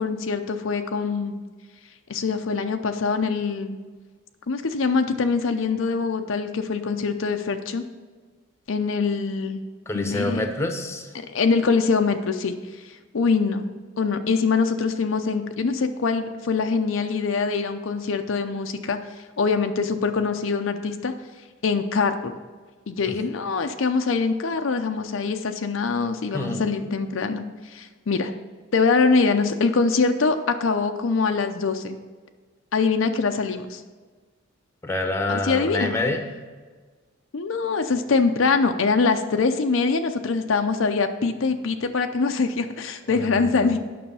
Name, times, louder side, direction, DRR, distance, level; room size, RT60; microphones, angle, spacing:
voice 1, 0.0-1.4 2.1-3.8 4.5-7.8 8.7-9.6 9.9-10.5 11.1-12.5 13.1-13.7 14.0-19.0 19.4-21.1 21.6-22.4 22.9-27.4 27.7-28.3 28.7-32.0 32.7-33.8 35.3-36.0 37.3-43.8, left 4 dB, 70° left, 7 dB, 0.6 m, -23 dB
voice 2, 9.9-11.1 23.1-23.2 26.3-26.6 34.8-36.2 43.1-43.8, left 2 dB, 15° left, 4 dB, 0.9 m, -27 dB
9.3 x 6.3 x 5.5 m, 1.4 s
head